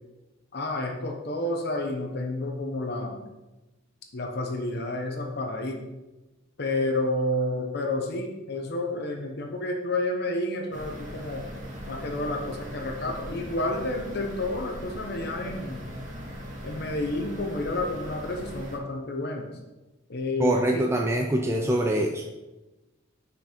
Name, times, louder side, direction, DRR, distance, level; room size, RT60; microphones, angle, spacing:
voice 1, 0.5-3.2 4.1-5.8 6.6-11.4 11.9-15.8 16.6-19.4 20.1-20.8, left 2 dB, 55° left, 2 dB, 0.9 m, -30 dB
sound 1, 10.7-18.8, equal, 40° right, 1.5 m, -39 dB
voice 2, 20.4-22.2, right 1 dB, 15° right, 1 dB, 0.5 m, -24 dB
5.9 x 4.6 x 5.1 m, 1.1 s
head